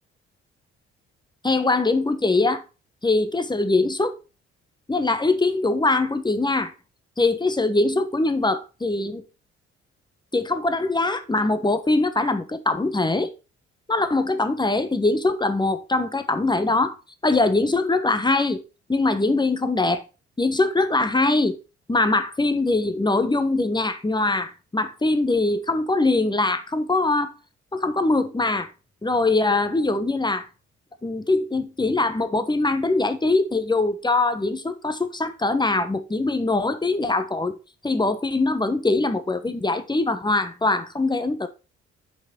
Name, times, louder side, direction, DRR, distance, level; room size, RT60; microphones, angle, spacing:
voice 1, 1.4-2.6 3.0-4.2 4.9-6.7 7.2-9.2 10.3-13.3 13.9-17.0 17.2-18.6 18.9-20.0 20.4-21.6 21.9-27.3 27.7-28.7 29.0-30.5 31.0-37.6 37.8-41.5, left 2 dB, 15° left, 1.1 m, -22 dB
6.1 x 5.3 x 4.4 m
figure-of-eight pair, 40°, 34 cm